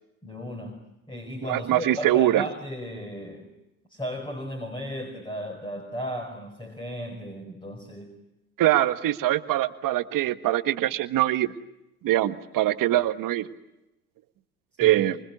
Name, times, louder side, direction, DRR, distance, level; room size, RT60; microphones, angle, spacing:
voice 1, 0.2-0.8 1.1-3.5 3.9-8.2 14.8-15.0, equal, 10° left, 3 dB, 5.1 m, -35 dB
voice 2, 1.5-2.4 8.6-11.5 12.0-13.5 14.8-15.1, right 14 dB, 45° right, 11 dB, 1.6 m, -23 dB
25.5 x 24.0 x 8.2 m, 0.90 s
hypercardioid pair, 90°, 44 cm